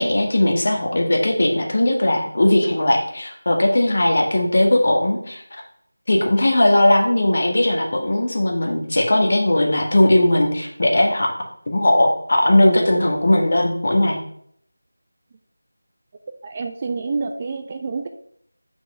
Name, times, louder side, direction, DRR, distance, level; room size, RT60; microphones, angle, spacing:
voice 1, 0.0-5.4 6.1-11.3 11.7-14.2, left 1 dB, 45° left, 1 dB, 1.7 m, -18 dB
voice 2, 16.4-18.1, right 4 dB, 20° right, 6 dB, 0.4 m, -27 dB
6.0 x 5.3 x 5.6 m, 0.66 s
figure-of-eight pair, 170°, 0 cm